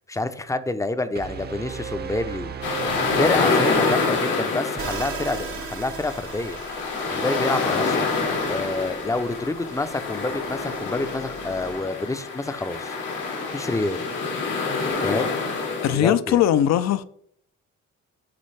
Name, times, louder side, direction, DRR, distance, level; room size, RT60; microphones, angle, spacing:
voice 1, 0.1-2.5 3.2-6.6 7.1-8.1 8.5-13.0 13.5-14.0 15.0-15.3 15.9-16.4, left 2 dB, 10° left, 0.5 m, -28 dB
sound 1, 1.2-4.1, right 6 dB, 35° right, 0.6 m, -35 dB
sound 2, 2.6-16.0, left 4 dB, 85° left, 1.8 m, -26 dB
sound 3, 4.8-11.8, right 5 dB, 75° right, 1.2 m, -39 dB
voice 2, 15.8-17.0, left 11 dB, 60° left, 0.5 m, -20 dB
9.8 x 3.4 x 3.3 m
cardioid pair, 90°, 30 cm